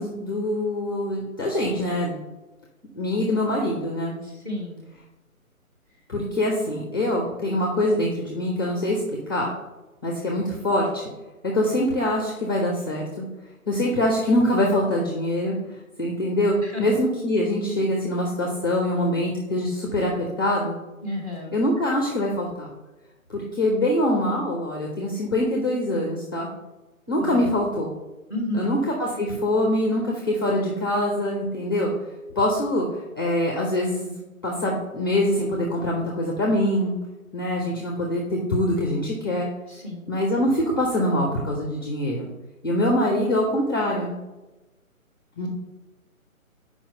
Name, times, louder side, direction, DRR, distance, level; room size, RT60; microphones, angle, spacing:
voice 1, 0.0-2.2 2.9-4.1 6.1-9.5 10.0-11.0 11.4-13.3 13.7-15.6 16.0-20.7 21.5-22.7 23.3-26.5 27.1-27.9 28.5-31.9 32.4-34.1 34.4-36.9 37.3-39.5 40.1-42.3 42.6-44.1 45.4-45.5, left 1 dB, 15° left, -1 dB, 0.6 m, -24 dB
voice 2, 4.2-4.9 16.6-16.9 21.0-21.5 27.2-27.5 28.3-28.7 39.7-40.1, left 1 dB, 15° right, 0 dB, 1.2 m, -31 dB
5.8 x 4.9 x 5.4 m, 1.1 s
figure-of-eight pair, 145°, 43 cm